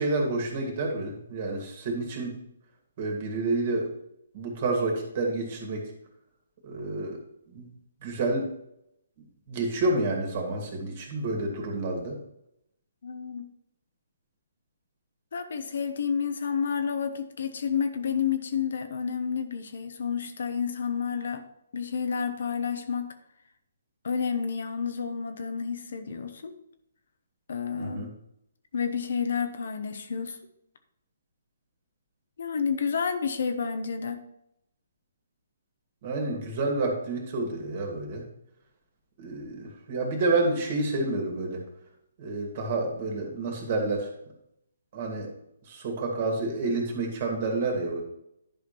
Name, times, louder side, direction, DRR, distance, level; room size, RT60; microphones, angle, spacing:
voice 1, 0.0-2.4 3.0-3.9 4.3-5.9 6.6-7.2 7.5-7.7 8.0-8.5 9.5-12.2 27.8-28.1 36.0-38.3 39.2-41.6 42.2-44.1 44.9-45.3 45.6-48.0, right 2 dB, 45° right, 1 dB, 2.6 m, -29 dB
voice 2, 13.0-13.4 15.3-21.4 21.7-23.0 24.0-26.6 27.5-28.0 28.7-30.4 32.4-34.2, left 6 dB, 65° left, 8 dB, 1.0 m, -30 dB
11.0 x 5.1 x 4.4 m, 0.78 s
hypercardioid pair, 140°, 0 cm